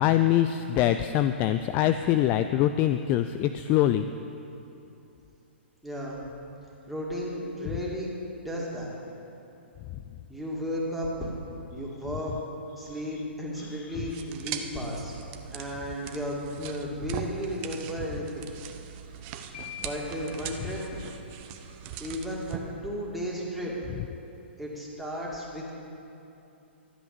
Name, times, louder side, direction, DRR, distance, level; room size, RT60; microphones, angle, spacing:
voice 1, 0.0-4.1 13.6-13.7, left 12 dB, 30° left, 10 dB, 0.3 m, -24 dB
voice 2, 5.8-6.2 6.9-9.0 10.3-11.3 11.7-12.3 12.8-15.1 15.5-18.5 19.8-21.0 22.0-23.7 24.6-25.7, equal, ahead, -5 dB, 2.5 m, -34 dB
sound 1, 14.1-22.6, right 9 dB, 35° right, 0.8 m, -40 dB
sound 2, 19.5-21.7, left 10 dB, 50° left, 1.2 m, -46 dB
13.0 x 8.2 x 6.9 m, 2.8 s
figure-of-eight pair, 120°, 6 cm